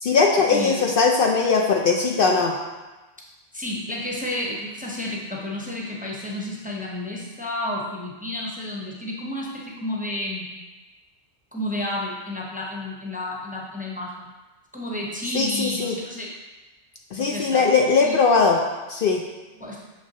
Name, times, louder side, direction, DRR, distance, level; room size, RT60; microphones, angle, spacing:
voice 1, 0.0-2.5 15.3-16.0 17.1-18.6 18.9-19.2, left 4 dB, 60° left, 1 dB, 0.7 m, -20 dB
voice 2, 0.5-0.9 3.5-10.5 11.5-14.2 14.7-16.3 17.2-17.8 18.0-18.2 19.6-19.8, left 1 dB, 10° right, -3 dB, 0.7 m, -31 dB
6.6 x 5.7 x 2.8 m, 1.2 s
omnidirectional pair, 1.1 m